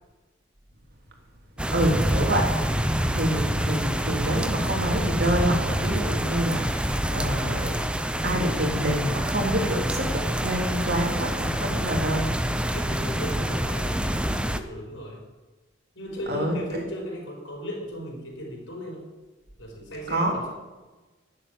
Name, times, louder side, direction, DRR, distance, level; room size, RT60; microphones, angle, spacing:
sound 1, 1.6-14.6, equal, 5° right, 0.6 m, -26 dB
voice 1, 1.7-2.5 3.1-7.7 8.2-12.3 16.3-16.6 20.1-20.5, right 1 dB, 55° right, 0 dB, 3.1 m, -27 dB
voice 2, 12.7-15.2 15.9-19.0 19.6-20.5, equal, 90° left, -1 dB, 4.5 m, -36 dB
11.5 x 7.7 x 8.6 m, 1.2 s
head